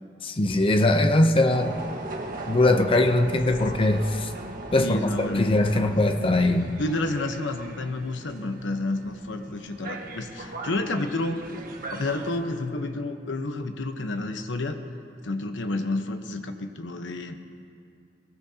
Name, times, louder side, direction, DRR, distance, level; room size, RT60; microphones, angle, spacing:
voice 1, 0.2-1.7 2.5-4.3 4.7-6.8, left 2 dB, 30° left, 6 dB, 0.7 m, -21 dB
sound 1, 1.5-12.4, right 2 dB, 50° right, 1.5 m, -39 dB
voice 2, 4.8-6.1 6.8-11.6 11.9-14.8 15.2-17.4, left 2 dB, 85° left, 6 dB, 1.0 m, -30 dB
22.0 x 19.0 x 2.9 m, 2.3 s
head